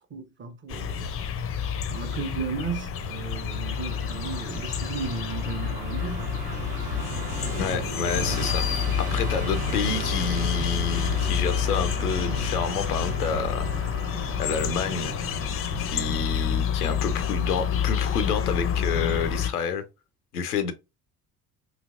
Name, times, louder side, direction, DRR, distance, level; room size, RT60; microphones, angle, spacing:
voice 1, 0.1-1.1 1.6-6.4, right 5 dB, 25° right, 0.7 m, -35 dB
sound 1, 0.7-19.5, left 8 dB, 30° left, 0.5 m, -28 dB
Musical instrument, 3.1-18.4, right 3 dB, 80° right, 0.6 m, -37 dB
voice 2, 7.6-8.7 9.0-14.0 14.4-15.1 15.8-19.8 20.3-20.7, left 5 dB, 85° left, 0.5 m, -29 dB
4.0 x 2.8 x 2.4 m
figure-of-eight pair, 50°, 44 cm